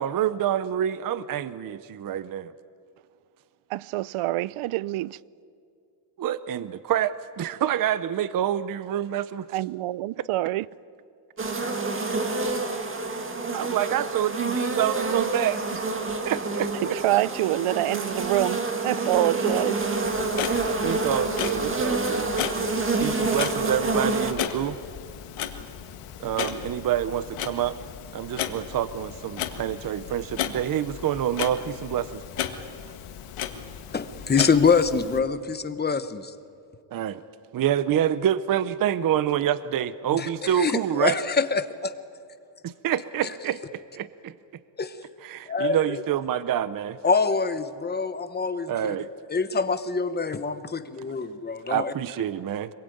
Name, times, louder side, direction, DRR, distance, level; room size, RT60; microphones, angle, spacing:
voice 1, 0.0-2.5 6.2-9.5 10.2-10.3 13.1-15.8 16.2-17.0 20.8-22.3 23.0-24.8 26.2-27.8 28.1-32.2 36.9-37.2 37.5-41.2 42.6-44.3 45.2-47.0 48.7-49.1 51.7-52.7, right 10 dB, 40° right, 0.7 m, -27 dB
voice 2, 3.7-5.2 9.5-10.7 16.9-19.9, right 16 dB, 80° right, 0.7 m, -26 dB
sound 1, 11.4-24.3, right 3 dB, 25° right, 1.9 m, -27 dB
Clock, 20.0-35.2, left 9 dB, 80° left, 2.0 m, -35 dB
voice 3, 33.9-36.3 40.1-41.9 43.2-43.3 44.8-45.0 45.5-45.9 47.0-49.0 49.3-51.9, left 5 dB, 20° left, 0.9 m, -25 dB
25.5 x 22.0 x 9.2 m
cardioid pair, 155°, 50 cm